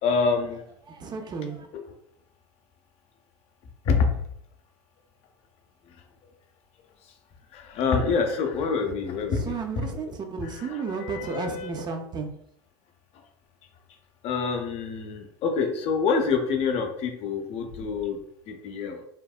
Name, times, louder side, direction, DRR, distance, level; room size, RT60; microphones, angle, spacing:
voice 1, 0.0-0.6 1.7-1.8 3.8-4.1 7.5-9.8 10.6-11.8 14.2-18.2 18.5-19.0, left 5 dB, 45° left, 5 dB, 0.5 m, -26 dB
voice 2, 0.9-1.7 9.3-12.3, right 5 dB, 30° right, 5 dB, 0.4 m, -33 dB
3.4 x 2.0 x 2.3 m, 0.70 s
hypercardioid pair, 80°, 14 cm